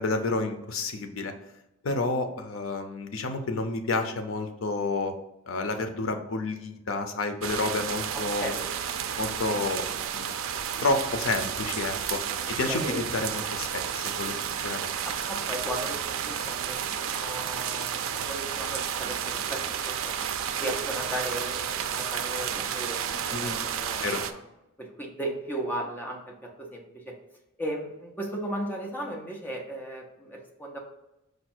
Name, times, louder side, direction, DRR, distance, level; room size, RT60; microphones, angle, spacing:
voice 1, 0.0-1.3 1.8-5.1 5.5-8.5 9.2-9.9 10.1-10.3 10.8-15.0 23.3-23.6 24.0-24.2, left 3 dB, 75° left, 6 dB, 0.6 m, -30 dB
sound 1, 7.4-24.3, right 8 dB, 80° right, 0.4 m, -31 dB
voice 2, 8.1-8.7 12.5-13.0 15.0-20.2 20.6-24.4 24.8-27.1 27.6-30.8, right 1 dB, 10° left, 0 dB, 0.7 m, -36 dB
5.0 x 2.3 x 4.3 m, 0.92 s
head